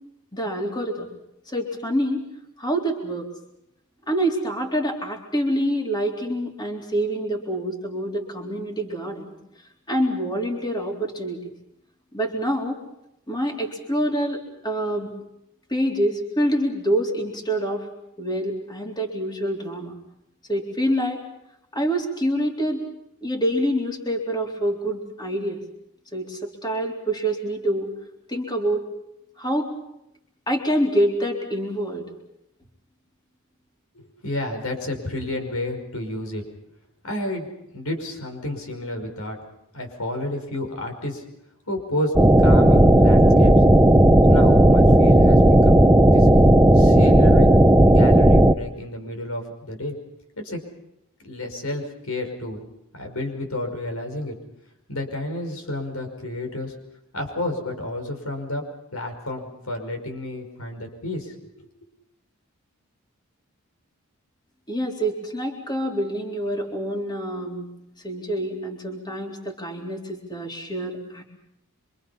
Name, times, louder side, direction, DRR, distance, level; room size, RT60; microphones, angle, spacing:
voice 1, 0.3-1.1 1.5-2.2 2.6-3.3 4.1-9.3 9.9-11.5 12.1-12.8 13.3-15.1 15.7-17.8 18.2-20.0 20.5-21.2 21.7-22.8 23.2-25.6 26.1-27.9 28.3-28.8 29.4-29.7 30.5-32.1 64.7-67.7 68.0-71.2, right 1 dB, 20° left, 0 dB, 4.0 m, -26 dB
voice 2, 33.9-36.4 37.0-37.5 37.7-39.4 39.7-41.2 41.7-42.1 42.4-43.5 44.3-46.3 46.7-50.0 50.4-50.6 51.2-52.6 52.9-54.4 54.9-56.7 57.1-58.6 58.9-61.7, left 1 dB, 80° left, 4 dB, 5.6 m, -30 dB
sound 1, 42.1-48.5, right 1 dB, 10° right, 0.8 m, -13 dB
27.0 x 26.0 x 5.7 m, 0.82 s
head